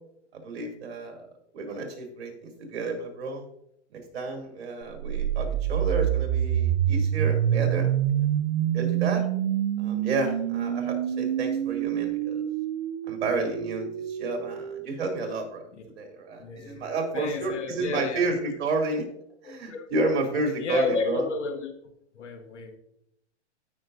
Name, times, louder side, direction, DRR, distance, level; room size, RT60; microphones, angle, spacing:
voice 1, 0.3-3.5 3.9-7.9 8.2-8.3 8.7-9.3 9.8-12.4 13.1-15.6 16.0-19.1 19.4-21.2, right 3 dB, 60° right, 3 dB, 2.8 m, -31 dB
sound 1, 4.9-14.9, right 10 dB, 35° right, 0.4 m, -27 dB
voice 2, 16.4-16.9 17.1-18.3 19.4-21.7 22.1-22.8, left 4 dB, 80° left, 4 dB, 1.5 m, -32 dB
14.5 x 5.9 x 2.6 m, 0.74 s
hypercardioid pair, 130°, 35 cm